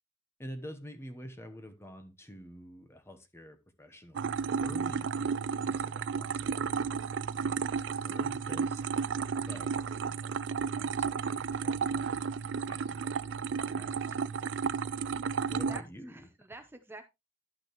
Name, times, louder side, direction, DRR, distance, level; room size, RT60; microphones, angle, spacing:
voice 1, 0.4-4.3 4.6-6.9 7.4-8.8 9.5-9.7 10.0-10.3 10.7-12.1 12.7-13.1 13.7-14.2 15.5-16.2, equal, 15° left, 0.9 m, -48 dB
sound 1, 4.1-15.8, right 6 dB, 75° right, 0.4 m, -33 dB
voice 2, 15.7-17.0, right 2 dB, 10° right, 0.8 m, -48 dB
12.0 x 6.0 x 3.0 m
head